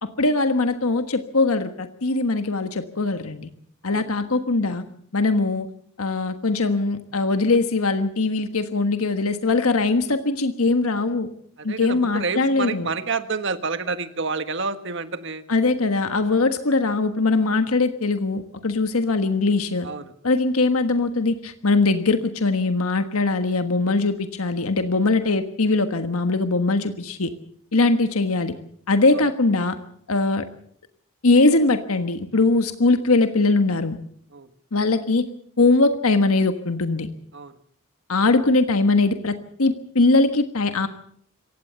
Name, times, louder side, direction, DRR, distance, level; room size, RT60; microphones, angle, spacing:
voice 1, 0.0-3.5 3.8-4.8 5.1-5.7 6.0-11.3 11.6-12.9 15.5-19.9 20.2-27.3 27.7-28.5 28.9-29.8 30.1-30.5 31.2-34.0 34.7-35.2 35.6-37.1 38.1-40.9, left 3 dB, 85° left, 8 dB, 1.4 m, -21 dB
voice 2, 11.6-15.4 19.8-20.1 29.2-29.3 34.3-34.5 37.3-37.5, right 4 dB, 55° right, 10 dB, 1.5 m, -29 dB
26.0 x 15.5 x 7.0 m, 0.64 s
head